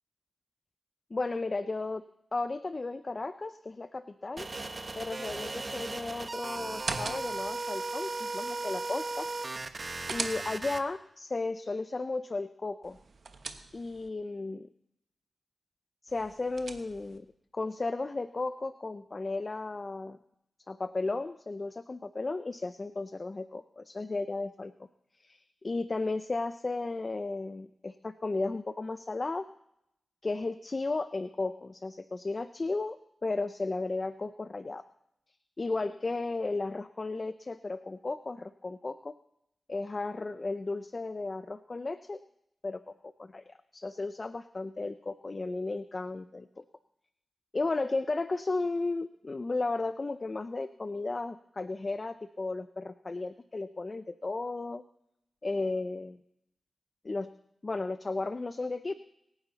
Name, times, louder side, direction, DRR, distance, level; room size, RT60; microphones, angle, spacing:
voice 1, 1.1-2.0 2.3-4.5 5.0-9.3 10.1-13.0 13.7-14.7 16.0-17.3 17.5-20.2 20.7-24.7 25.1-29.5 30.2-34.8 35.6-39.1 39.7-42.2 42.6-46.6 47.5-54.8 55.4-56.2 57.0-57.3 57.6-58.9, left 3 dB, 40° left, 12 dB, 0.5 m, -34 dB
sound 1, 4.4-10.8, right 3 dB, 40° right, 1.0 m, -37 dB
sound 2, 6.7-7.6 9.6-10.9 12.8-14.1 16.1-17.2, right 4 dB, 65° right, 1.1 m, -40 dB
24.0 x 9.9 x 4.0 m, 0.80 s
wide cardioid pair, 85°, 0 cm